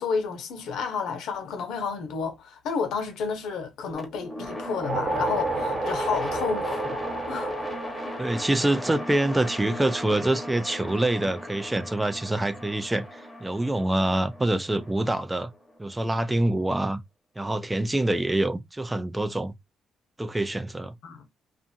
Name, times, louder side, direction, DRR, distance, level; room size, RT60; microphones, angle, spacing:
voice 1, 0.0-7.0 7.3-7.7 21.0-21.2, left 5 dB, 80° left, 0.8 m, -31 dB
sound 1, 3.9-16.0, left 1 dB, 5° left, 0.9 m, -37 dB
sound 2, 4.6-9.2, right 3 dB, 40° right, 0.9 m, -31 dB
voice 2, 8.2-15.5 15.8-17.0 17.4-19.5 20.2-20.9, right 1 dB, 15° right, 0.4 m, -26 dB
2.5 x 2.5 x 2.6 m
cardioid pair, 90°, 0 cm